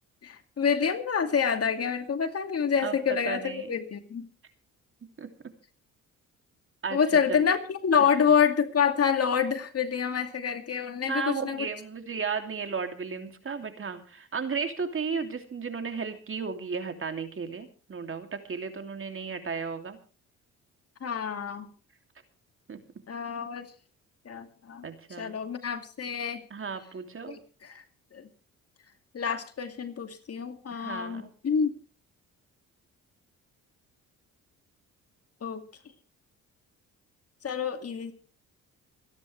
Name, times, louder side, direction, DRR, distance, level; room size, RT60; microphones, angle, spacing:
voice 1, 0.2-4.3 6.9-11.7 21.0-21.7 23.1-23.7 24.3-24.9 25.2-26.4 27.3-27.8 28.1-28.3 29.1-31.7 35.4-35.6 37.4-38.1, left 7 dB, 45° left, 7 dB, 2.4 m, -27 dB
voice 2, 3.3-3.7 5.2-5.3 6.8-7.0 7.3-7.4 11.1-20.0 22.7-22.8 24.8-25.4 26.5-27.4 30.7-31.3, right 5 dB, 40° right, 6 dB, 2.9 m, -34 dB
27.5 x 10.5 x 3.3 m, 0.38 s
supercardioid pair, 70°, 32 cm